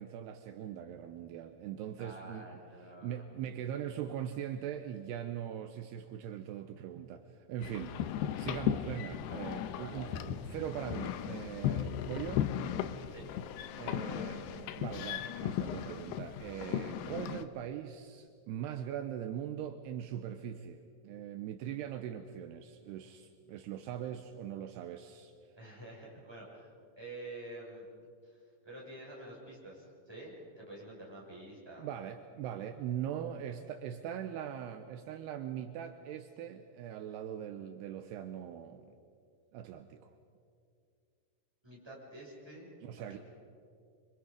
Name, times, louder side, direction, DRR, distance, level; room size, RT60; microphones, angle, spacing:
voice 1, 0.0-2.5 3.0-12.5 13.8-25.3 31.8-38.9 39.5-40.2 42.8-43.2, right 10 dB, 85° right, 7 dB, 2.4 m, -41 dB
voice 2, 2.0-3.2 9.2-9.4 9.7-10.3 13.1-13.2 25.6-26.7 27.0-27.9 28.2-31.9 41.6-43.2, right 1 dB, 5° right, -4 dB, 6.0 m, -49 dB
sound 1, 7.6-17.5, left 10 dB, 90° left, 2.3 m, -36 dB
26.0 x 26.0 x 5.2 m, 2.4 s
omnidirectional pair, 5.7 m